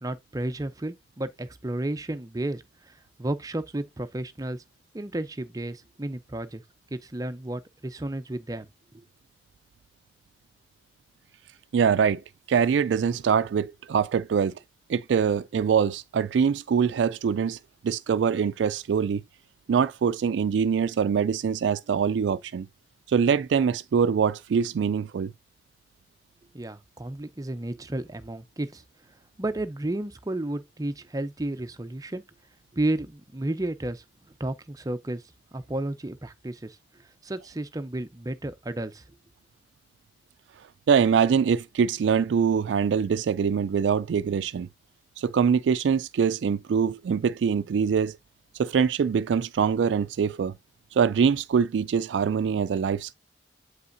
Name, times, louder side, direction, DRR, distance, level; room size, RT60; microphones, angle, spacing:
voice 1, 0.0-2.9 3.2-4.6 4.9-6.6 6.9-8.7 8.9-9.0 26.5-28.8 29.4-32.2 32.7-34.0 34.4-35.2 35.5-36.8 37.2-39.0, right 1 dB, 20° right, 0.6 m, -32 dB
voice 2, 11.7-12.2 12.5-14.5 14.9-17.6 17.8-19.2 19.7-22.7 23.1-25.3 40.9-44.7 45.2-48.2 48.6-50.5 50.9-53.1, right 6 dB, 90° right, 0.3 m, -23 dB
7.9 x 5.5 x 2.6 m
head